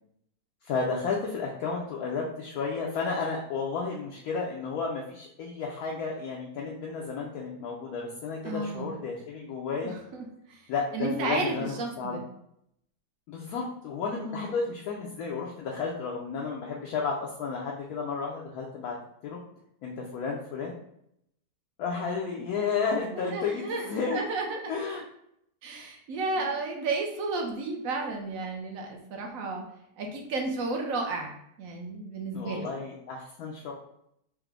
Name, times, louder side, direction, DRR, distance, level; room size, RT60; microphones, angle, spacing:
voice 1, 0.6-9.9 10.7-12.2 13.3-19.0 19.2-19.4 19.8-20.8 21.8-24.2 24.7-25.0 26.4-26.5 32.3-33.7, left 5 dB, 70° left, -2 dB, 1.1 m, -32 dB
voice 2, 8.4-8.9 9.8-10.6 10.9-12.2 14.1-14.6 23.1-24.8 25.6-29.6 30.0-31.3 31.6-32.7, right 3 dB, 65° right, 2 dB, 1.0 m, -33 dB
4.8 x 2.1 x 3.4 m, 0.75 s
omnidirectional pair, 1.8 m